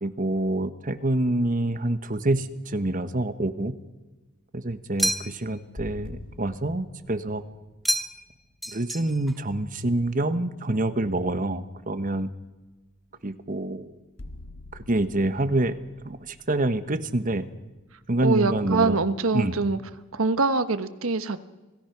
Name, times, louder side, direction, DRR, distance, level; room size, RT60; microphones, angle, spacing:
voice 1, 0.0-3.7 4.5-7.4 8.7-12.3 13.2-13.9 14.9-15.8 16.0-17.5 18.1-19.0 19.3-19.6, right 1 dB, 40° right, 11 dB, 1.2 m, -26 dB
sound 1, 5.0-5.6 7.8-8.3 8.6-9.4, equal, ahead, 0.7 m, -29 dB
sound 2, 5.8-9.5 13.1-13.3 14.2-18.0, left 2 dB, 85° left, 1.6 m, -46 dB
voice 2, 18.2-19.8 20.1-21.4, right 3 dB, 80° right, 11 dB, 1.2 m, -24 dB
27.0 x 17.5 x 6.0 m, 1.2 s
head